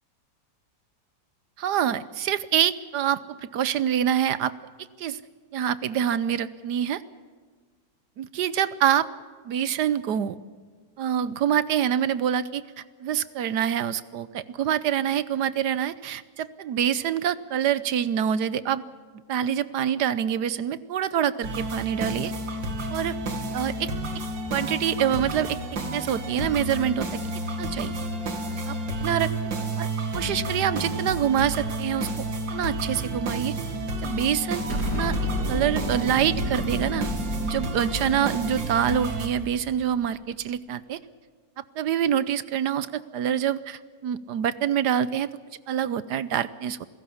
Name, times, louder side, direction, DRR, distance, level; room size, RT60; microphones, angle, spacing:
voice 1, 1.6-4.5 5.0-5.2 5.5-7.0 8.2-9.1 9.5-10.4 11.0-12.6 13.0-18.8 19.3-22.3 22.9-23.2 23.5-23.9 24.5-25.6 25.9-27.1 27.6-28.1 28.7-28.8 29.0-29.3 29.8-29.9 30.1-32.1 32.5-33.5 34.0-34.6 34.9-35.1 35.5-37.1 37.4-41.0 41.8-45.3 45.7-46.8, right 9 dB, 70° right, 16 dB, 1.3 m, -26 dB
sound 1, 21.4-39.3, right 1 dB, 90° right, 3.1 m, -31 dB
Explosion, 34.7-39.9, right 1 dB, 50° right, 3.8 m, -32 dB
28.0 x 16.5 x 7.2 m, 1.5 s
omnidirectional pair, 2.0 m